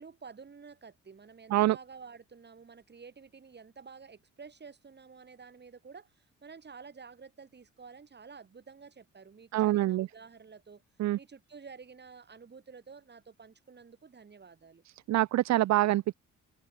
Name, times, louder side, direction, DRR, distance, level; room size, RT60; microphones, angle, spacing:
voice 1, 0.0-10.8 11.2-14.8, right 5 dB, 35° right, 3.9 m, -51 dB
voice 2, 9.5-10.1 11.0-11.2 15.1-16.1, right 15 dB, 65° right, 0.5 m, -25 dB
cardioid pair, 90°, 30 cm